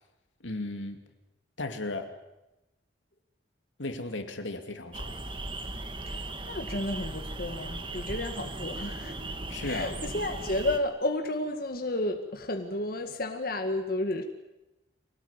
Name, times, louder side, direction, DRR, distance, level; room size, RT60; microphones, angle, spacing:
voice 1, 0.4-1.0 1.6-2.1 3.8-5.1 9.5-9.9, left 2 dB, 85° left, 6 dB, 2.6 m, -35 dB
sound 1, 4.9-10.8, right 2 dB, 25° right, 1.7 m, -37 dB
voice 2, 6.1-14.2, left 1 dB, 50° left, 5 dB, 1.9 m, -32 dB
25.0 x 18.5 x 9.8 m, 0.97 s
head